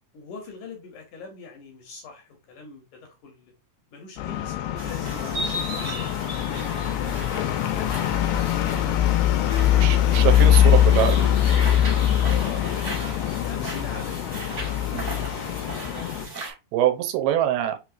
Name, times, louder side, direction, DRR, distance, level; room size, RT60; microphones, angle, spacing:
voice 1, 0.1-3.5 3.9-7.3 7.7-10.3 12.1-16.1, left 4 dB, 70° left, 2.1 m, -42 dB
sound 1, 4.2-16.3, left 11 dB, 85° left, 2.6 m, -22 dB
sound 2, 4.8-16.5, right 1 dB, 40° right, 1.0 m, -36 dB
voice 2, 9.7-11.3 14.9-15.1 16.4-17.8, right 11 dB, 85° right, 2.6 m, -24 dB
5.8 x 3.0 x 2.4 m
omnidirectional pair, 4.3 m